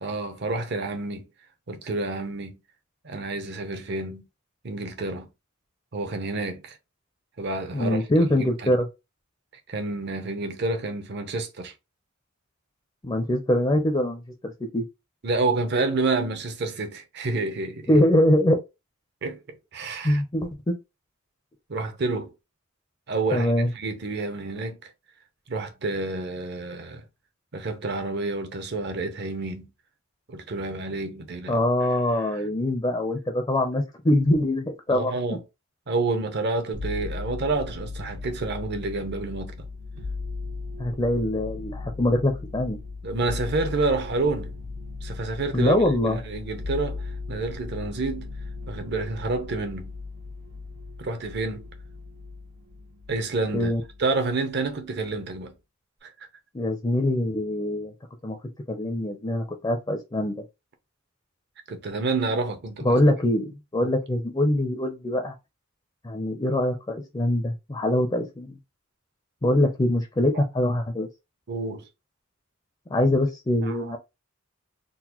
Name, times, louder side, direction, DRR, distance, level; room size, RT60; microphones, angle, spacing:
voice 1, 0.0-1.3 1.7-2.6 3.0-4.3 4.6-5.3 5.9-6.8 7.4-8.8 9.7-11.7 15.2-18.0 19.2-20.2 21.7-22.3 23.1-24.9 25.5-27.0 27.5-29.7 30.3-32.5 34.9-35.4 35.9-39.7 43.0-44.5 45.0-48.3 48.7-49.9 51.0-51.7 53.1-53.7 54.0-55.5 56.0-56.3 61.7-63.0 63.8-63.9 70.3-70.4 71.5-71.9 73.6-73.9, right 3 dB, 50° right, 0.7 m, -29 dB
voice 2, 7.7-8.9 13.0-14.8 17.9-18.6 20.0-20.7 23.3-23.7 31.5-35.4 40.8-42.8 45.5-46.2 53.5-53.8 56.5-57.9 58.2-58.4 58.7-60.4 62.8-65.3 66.0-68.6 69.4-71.1 72.9-74.0, left 1 dB, 20° left, 0.5 m, -23 dB
sound 1, 36.7-54.2 54.5-55.3, left 3 dB, 80° right, 1.1 m, -37 dB
3.8 x 2.1 x 2.9 m
head